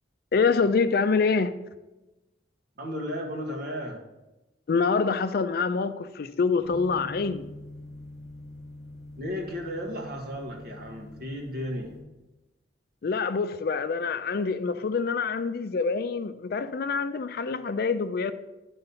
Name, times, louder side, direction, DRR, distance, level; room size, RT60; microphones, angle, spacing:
voice 1, 0.3-1.5 4.7-7.5 13.0-18.3, left 4 dB, 55° left, 0.4 m, -26 dB
voice 2, 2.8-4.0 9.2-11.9, equal, 55° right, 1.6 m, -34 dB
sound 1, 6.6-12.0, left 1 dB, 20° right, 1.9 m, -45 dB
9.7 x 3.9 x 5.5 m
head